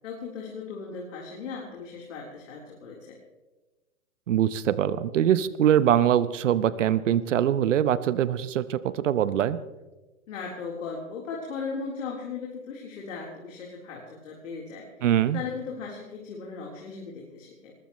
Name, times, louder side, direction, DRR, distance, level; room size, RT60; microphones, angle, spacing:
voice 1, 0.0-3.2 10.3-15.1 15.3-17.8, left 5 dB, 60° left, -3 dB, 4.1 m, -37 dB
voice 2, 4.3-9.6 15.0-15.4, right 10 dB, 60° right, 16 dB, 1.0 m, -23 dB
21.0 x 20.0 x 3.2 m, 1.2 s
hypercardioid pair, 125°, 42 cm